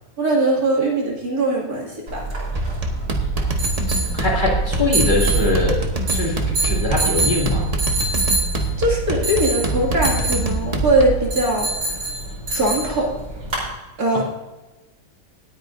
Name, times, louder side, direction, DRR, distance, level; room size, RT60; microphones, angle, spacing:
voice 1, 0.2-2.2 8.8-11.7 12.5-13.1 14.0-14.2, right 1 dB, 60° right, -3 dB, 2.8 m, -20 dB
sound 1, 2.1-13.7, right 2 dB, 80° right, 4.3 m, -25 dB
sound 2, 2.6-11.3, right 2 dB, 25° right, 1.1 m, -25 dB
voice 2, 3.9-5.8 6.1-7.7, left 2 dB, 25° left, -4 dB, 2.6 m, -22 dB
19.5 x 8.9 x 2.6 m, 1.1 s
omnidirectional pair, 1.8 m